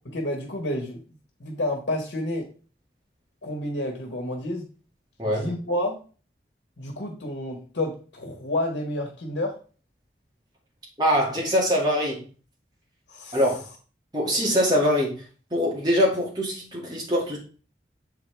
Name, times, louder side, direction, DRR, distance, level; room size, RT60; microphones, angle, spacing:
voice 1, 0.1-1.0 1.4-2.5 3.4-4.7 5.2-6.0 6.8-9.5 13.1-13.4, left 1 dB, 90° left, 2 dB, 1.4 m, -30 dB
voice 2, 5.2-5.5 11.0-12.2 13.3-13.6 14.1-15.1 15.5-17.4, equal, 25° right, -3 dB, 2.2 m, -23 dB
6.8 x 4.6 x 3.3 m, 0.37 s
head